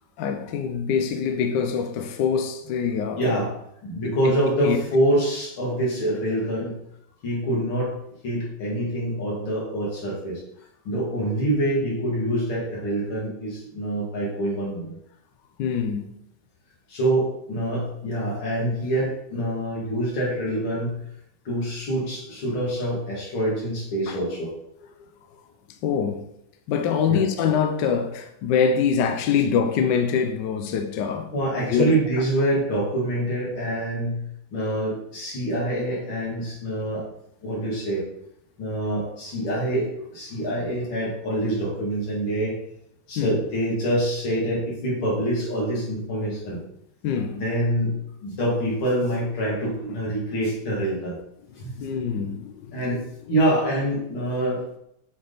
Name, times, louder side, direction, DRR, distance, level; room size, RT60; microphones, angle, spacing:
voice 1, 0.2-3.2 4.6-4.8 15.6-16.1 24.1-24.2 25.8-26.2 26.7-31.3 31.7-31.9 43.2-43.3 47.0-47.4 51.8-52.7, left 6 dB, 70° left, 1.1 m, -24 dB
voice 2, 3.2-3.5 3.8-6.8 7.2-7.9 8.2-10.4 10.8-15.0 16.9-21.0 21.4-24.5 27.1-27.2 31.3-34.2 34.5-37.1 37.4-38.0 38.6-42.5 43.1-46.6 47.3-47.9 48.2-51.2 51.5-51.7 52.7-54.6, right 1 dB, 85° left, 3.0 m, -25 dB
7.6 x 3.6 x 3.9 m
omnidirectional pair, 2.2 m